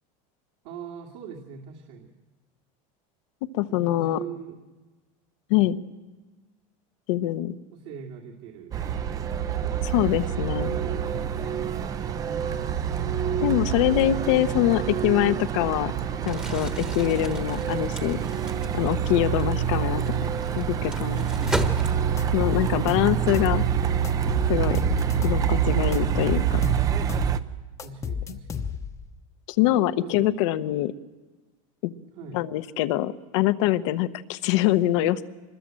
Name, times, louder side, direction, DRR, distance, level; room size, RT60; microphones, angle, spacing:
voice 1, 0.6-2.1 3.7-4.6 7.7-8.8 10.5-11.6 16.9-17.2 19.8-20.4 21.3-21.9 25.4-25.9 27.8-28.7 30.0-30.4 32.2-32.4, right 5 dB, 60° right, 1 dB, 2.5 m, -41 dB
voice 2, 3.5-4.2 5.5-5.8 7.1-7.6 9.8-10.7 13.4-15.9 16.2-18.2 18.7-20.0 20.6-21.3 22.3-23.6 24.5-24.8 25.1-26.6 29.6-30.9 32.3-35.2, left 14 dB, 65° left, 13 dB, 1.1 m, -24 dB
Truck, 8.7-27.4, right 9 dB, 20° right, 0.7 m, -26 dB
Crumpling crinkling, 16.3-22.4, right 1 dB, 5° right, 1.3 m, -36 dB
sound 1, 21.5-21.7 22.2-23.6 24.0-25.5 25.9-27.3 27.8-29.0, left 7 dB, 20° left, 1.0 m, -32 dB
25.5 x 21.0 x 7.7 m, 1.2 s
supercardioid pair, 170°, 17 cm